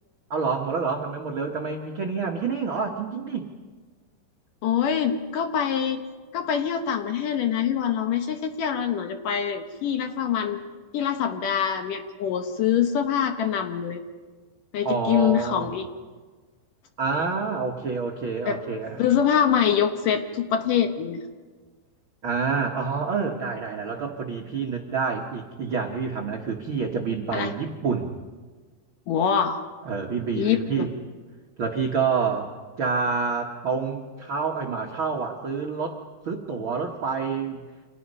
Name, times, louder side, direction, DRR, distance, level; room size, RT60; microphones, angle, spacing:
voice 1, 0.3-3.5 14.8-15.7 17.0-19.0 22.2-28.1 29.8-30.9 31.6-32.5 32.8-36.0 36.2-37.6, right 5 dB, 60° right, 1 dB, 1.3 m, -28 dB
voice 2, 4.6-6.0 6.3-10.6 10.9-14.0 14.7-15.9 18.5-18.6 19.0-21.2 27.3-27.5 29.1-29.6 30.4-30.9, left 8 dB, 65° left, 7 dB, 2.4 m, -24 dB
30.0 x 26.5 x 5.5 m, 1.4 s
omnidirectional pair, 4.7 m